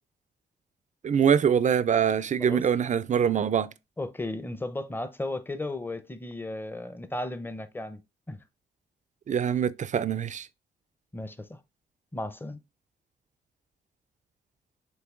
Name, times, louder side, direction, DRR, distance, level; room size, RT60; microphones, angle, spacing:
voice 1, 1.0-3.7 9.3-10.5, right 8 dB, 45° right, 0.4 m, -24 dB
voice 2, 4.0-8.0 8.3-8.4 11.1-11.6 12.1-12.6, left 2 dB, 10° left, 0.6 m, -35 dB
7.8 x 2.7 x 2.4 m
supercardioid pair, 55°, 18 cm